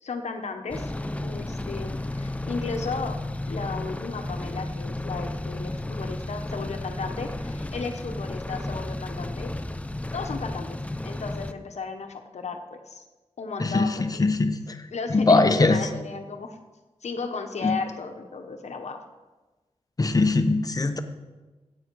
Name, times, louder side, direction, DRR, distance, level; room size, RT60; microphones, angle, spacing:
voice 1, 0.0-0.9 1.2-3.2 3.5-9.5 10.1-13.0 13.4-14.3 14.9-16.6 17.0-19.0, left 4 dB, 80° left, 5 dB, 1.1 m, -34 dB
sound 1, 0.7-11.5, left 1 dB, 10° left, 0.5 m, -33 dB
voice 2, 13.6-14.8 15.1-15.8 17.6-17.7 20.0-21.0, left 3 dB, 35° left, 8 dB, 0.9 m, -21 dB
15.0 x 8.8 x 4.7 m, 1.2 s
wide cardioid pair, 125°, 11 cm